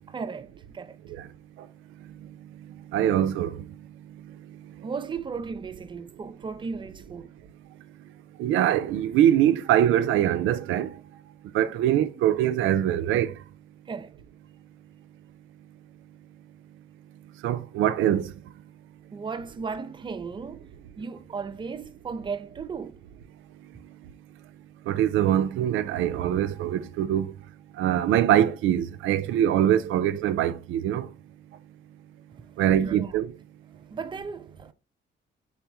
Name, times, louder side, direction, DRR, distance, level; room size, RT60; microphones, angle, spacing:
voice 1, 0.1-1.0 4.8-7.3 13.9-14.1 19.1-23.0 32.3-32.5 32.7-33.1 33.9-34.7, right 5 dB, 25° right, 0.4 m, -36 dB
voice 2, 2.9-3.7 8.4-10.9 11.5-13.3 17.4-18.3 24.9-27.3 27.8-31.1 32.6-33.3, right 11 dB, 85° right, 0.4 m, -23 dB
4.1 x 2.9 x 3.4 m
cardioid pair, 90°, 20 cm